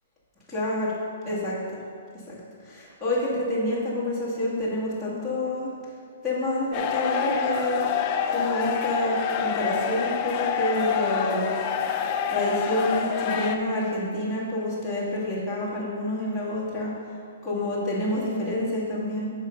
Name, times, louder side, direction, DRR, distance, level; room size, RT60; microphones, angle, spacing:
voice 1, 0.5-0.9 1.3-1.6 2.3-2.4 2.6-5.7 6.2-7.9 8.3-11.5 12.3-16.9 17.4-19.3, left 1 dB, ahead, -12 dB, 1.8 m, -28 dB
sound 1, 6.7-13.6, left 7 dB, 20° left, 0.4 m, -27 dB
7.9 x 5.2 x 5.7 m, 2.3 s
hypercardioid pair, 175°, 0 cm